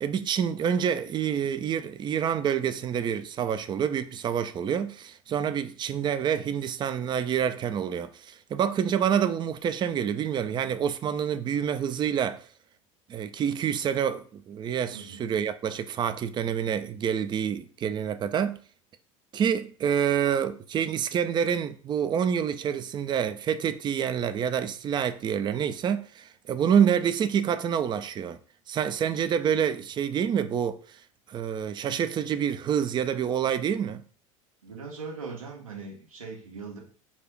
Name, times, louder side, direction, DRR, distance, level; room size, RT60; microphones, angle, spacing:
voice 1, 0.0-12.4 13.1-18.6 19.3-28.4 28.7-31.0 31.3-34.0, right 8 dB, 25° right, 0.5 m, -27 dB
voice 2, 14.9-15.2 34.6-36.8, right 4 dB, 85° right, 1.5 m, -40 dB
4.1 x 2.4 x 4.6 m
figure-of-eight pair, 80°, 17 cm